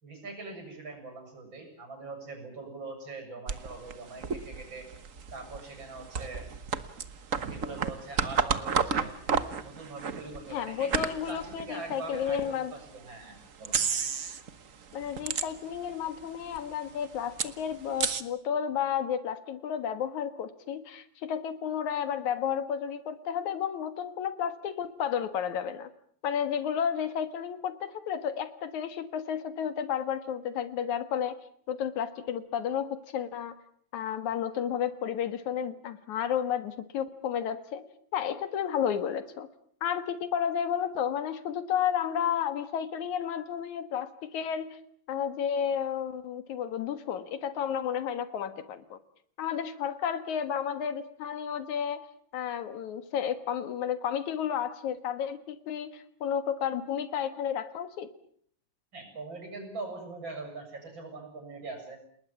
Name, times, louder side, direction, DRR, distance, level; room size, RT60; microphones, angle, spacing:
voice 1, 0.0-4.9 5.3-6.5 7.5-9.1 9.6-13.8 58.9-62.0, right 3 dB, 40° right, 5 dB, 7.8 m, -42 dB
sound 1, 3.5-12.5 13.0-13.1 13.6-14.5 14.8-15.9 16.2-16.3 16.5-18.2, right 6 dB, 60° right, 0.8 m, -32 dB
voice 2, 10.5-12.7 14.9-25.9 26.2-31.4 31.7-33.5 33.9-37.8 38.1-39.5 39.8-44.8 45.1-49.0 49.4-52.0 52.3-58.1, left 8 dB, 80° left, 11 dB, 2.9 m, -32 dB
29.5 x 20.0 x 7.3 m, 0.62 s
omnidirectional pair, 3.3 m